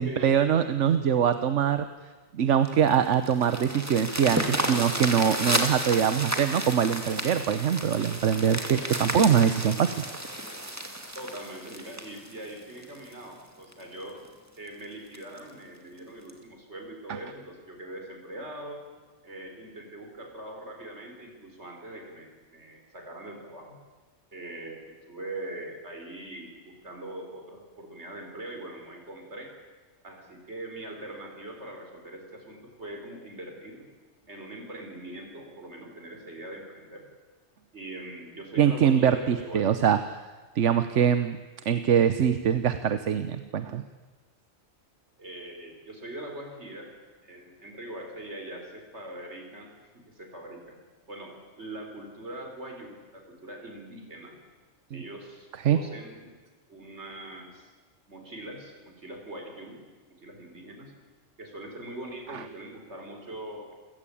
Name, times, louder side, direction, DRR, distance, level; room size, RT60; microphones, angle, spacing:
voice 1, 0.0-1.9 2.3-9.9 17.1-17.2 38.6-40.2 40.5-41.4 41.6-43.8 54.9-55.0 55.6-55.8 62.3-62.4, right 8 dB, 85° right, 11 dB, 1.2 m, -23 dB
sound 1, 2.7-13.1 13.7-13.8 14.2-14.3 14.7-14.8 15.1-15.4 16.3-16.4, right 1 dB, 15° right, 2.3 m, -32 dB
voice 2, 11.1-14.2 14.6-18.9 19.2-23.8 24.3-29.5 30.0-33.9 34.3-37.1 37.7-39.8 40.8-40.9 45.2-46.9 47.2-50.8 51.1-54.4 54.9-56.3 56.7-57.7 58.1-59.8 60.2-60.9 61.4-63.7, right 1 dB, 70° right, 3 dB, 4.8 m, -42 dB
28.5 x 16.5 x 8.6 m, 1.4 s
omnidirectional pair, 1.2 m